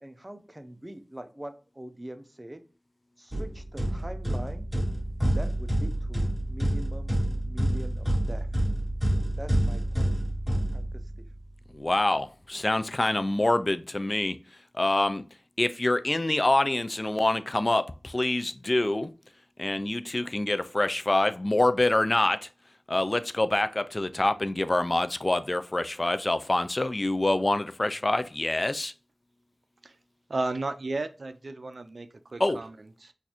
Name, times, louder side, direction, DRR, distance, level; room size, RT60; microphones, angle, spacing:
voice 1, 0.0-2.6 3.2-4.7 5.3-7.2 7.4-8.5 9.4-10.1 10.7-11.3, right 1 dB, 20° right, 0.6 m, -43 dB
sound 1, 3.3-11.3, right 1 dB, 5° right, 1.8 m, -28 dB
voice 2, 11.7-14.4 14.8-15.2 15.6-19.1 19.6-22.5 22.9-28.9 32.4-32.6, left 2 dB, 45° left, 0.3 m, -26 dB
voice 3, 30.3-33.1, right 2 dB, 80° right, 0.4 m, -34 dB
4.0 x 2.5 x 2.8 m
wide cardioid pair, 45°, 0 cm